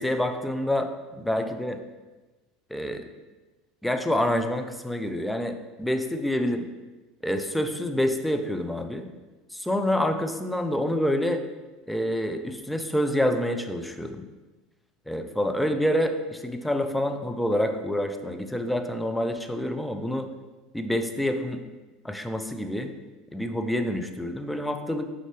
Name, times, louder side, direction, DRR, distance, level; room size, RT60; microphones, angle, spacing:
voice 1, 0.0-1.8 2.7-3.1 3.8-6.6 7.2-9.1 9.5-11.4 11.9-14.2 15.1-20.3 20.7-21.6 22.0-22.9 23.3-25.1, left 1 dB, 5° left, 6 dB, 0.7 m, -27 dB
6.6 x 5.4 x 3.4 m, 1.2 s
hypercardioid pair, 80°, 0 cm